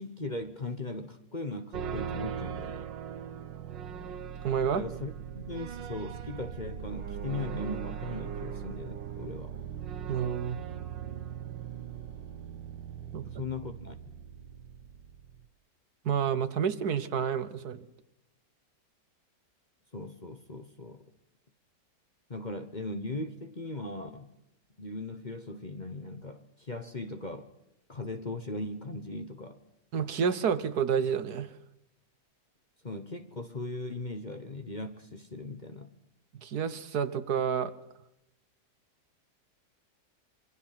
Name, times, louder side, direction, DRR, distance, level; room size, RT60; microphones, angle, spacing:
voice 1, 0.0-2.9 4.7-9.5 13.2-13.9 19.9-21.0 22.3-24.3 24.8-27.5 27.9-29.6 32.8-35.9, left 2 dB, 30° left, 8 dB, 1.2 m, -39 dB
sound 1, 1.7-15.5, right 8 dB, 85° right, 1.9 m, -39 dB
voice 2, 4.4-4.8 10.1-10.6 13.1-13.3 16.0-17.8 29.9-31.5 36.4-37.7, right 7 dB, 65° right, 13 dB, 1.5 m, -29 dB
26.5 x 24.0 x 5.9 m, 0.85 s
omnidirectional pair, 1.9 m